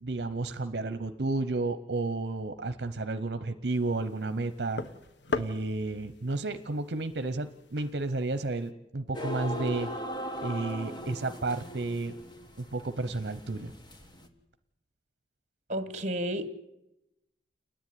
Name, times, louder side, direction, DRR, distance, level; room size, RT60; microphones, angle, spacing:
voice 1, 0.0-4.8 5.3-9.9 10.4-12.2 12.6-13.7, right 2 dB, 65° right, 0.8 m, -32 dB
sound 1, 3.6-8.7, left 4 dB, 80° left, 1.2 m, -41 dB
sound 2, 9.1-14.3, equal, 25° left, 1.7 m, -39 dB
voice 2, 15.7-16.5, right 1 dB, 40° right, 1.4 m, -31 dB
29.5 x 10.5 x 9.6 m
head